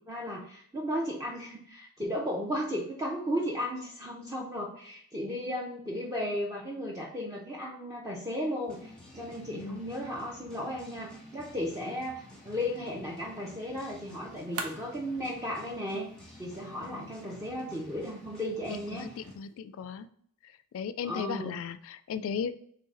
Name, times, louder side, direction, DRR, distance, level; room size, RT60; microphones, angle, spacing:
voice 1, 0.1-16.1 16.4-19.1 21.0-21.6, equal, 15° right, -4 dB, 0.6 m, -35 dB
sound 1, 8.7-19.4, left 1 dB, 5° left, 1.1 m, -51 dB
voice 2, 9.5-9.8 16.9-17.1 18.9-20.1 20.7-22.5, left 6 dB, 65° left, 15 dB, 0.3 m, -36 dB
sound 2, 12.2-18.1, right 4 dB, 75° right, 0.7 m, -47 dB
3.9 x 3.2 x 4.1 m, 0.64 s
head